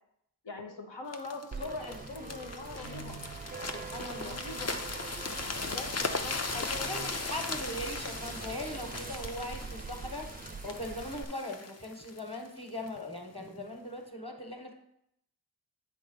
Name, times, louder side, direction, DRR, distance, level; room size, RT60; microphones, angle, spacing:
voice 1, 0.4-3.1 4.2-4.8 5.5-7.2, left 3 dB, 85° left, 4 dB, 1.0 m, -43 dB
sound 1, 1.1-13.0 13.6-13.8, left 3 dB, 40° left, 0.6 m, -38 dB
voice 2, 1.5-2.0 3.7-4.4 6.5-10.3 10.6-14.7, left 1 dB, 15° left, 4 dB, 1.3 m, -40 dB
sound 2, 1.5-11.2, right 5 dB, 25° right, 0.4 m, -43 dB
Guitar, 2.7-3.5, right 2 dB, 65° left, 1.6 m, -47 dB
8.1 x 3.6 x 5.5 m, 0.76 s
wide cardioid pair, 55°, 41 cm